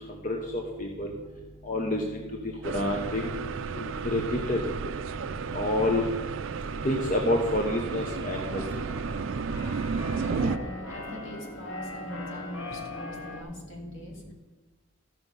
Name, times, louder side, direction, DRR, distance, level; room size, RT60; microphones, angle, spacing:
voice 1, 0.1-1.1 1.6-3.3 3.8-4.6 5.5-6.0 6.8-8.6, left 1 dB, 40° left, 1 dB, 0.9 m, -28 dB
sound 1, 2.6-10.6, right 5 dB, 70° right, 0.4 m, -33 dB
Keyboard (musical), 7.5-13.4, left 2 dB, 85° left, 1.2 m, -41 dB
voice 2, 10.1-14.3, equal, 70° left, 0 dB, 2.4 m, -41 dB
14.5 x 6.0 x 5.3 m, 1.2 s
head